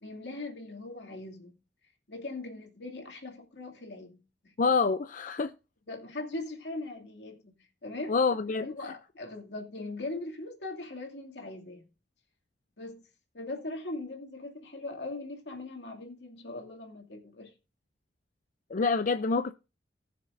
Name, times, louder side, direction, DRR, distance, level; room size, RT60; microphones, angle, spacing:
voice 1, 0.0-1.6 2.1-4.2 4.4-4.5 5.9-8.2 8.6-11.8 12.8-13.0 13.3-17.5, left 2 dB, 80° left, 2.5 m, -40 dB
voice 2, 4.6-5.5 8.1-8.7 18.7-19.5, left 4 dB, 50° left, 0.5 m, -26 dB
19.5 x 6.7 x 2.6 m
head